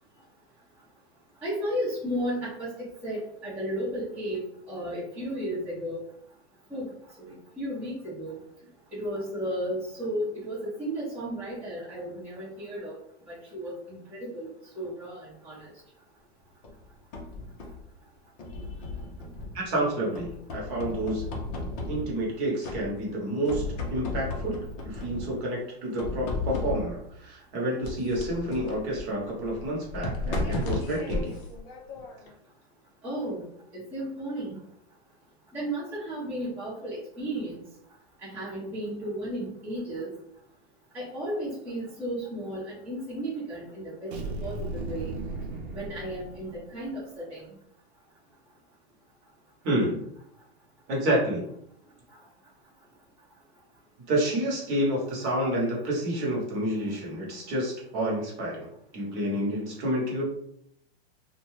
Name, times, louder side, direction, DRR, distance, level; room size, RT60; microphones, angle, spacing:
voice 1, 1.4-4.4 4.7-6.0 6.7-6.9 7.2-8.3 8.9-12.9 13.3-14.5 14.7-15.7 20.0-20.1 33.0-33.4 33.9-34.6 35.5-37.6 38.2-40.1 40.9-44.1 44.4-45.1 45.7-47.4, equal, 5° right, -11 dB, 0.8 m, -34 dB
sound 1, 16.6-17.9 18.4-19.7 20.2-22.3 22.6-23.2 23.5-25.4 26.0-27.1 27.8-32.3, left 2 dB, 30° left, 0.6 m, -35 dB
voice 2, 19.5-21.2 21.9-31.3 49.6-50.1 50.9-51.4 54.1-58.7 58.9-60.2, right 1 dB, 30° right, -3 dB, 1.0 m, -29 dB
sound 2, 44.1-46.9, right 2 dB, 70° right, 0.7 m, -36 dB
2.6 x 2.2 x 3.1 m, 0.72 s
hypercardioid pair, 145°, 33 cm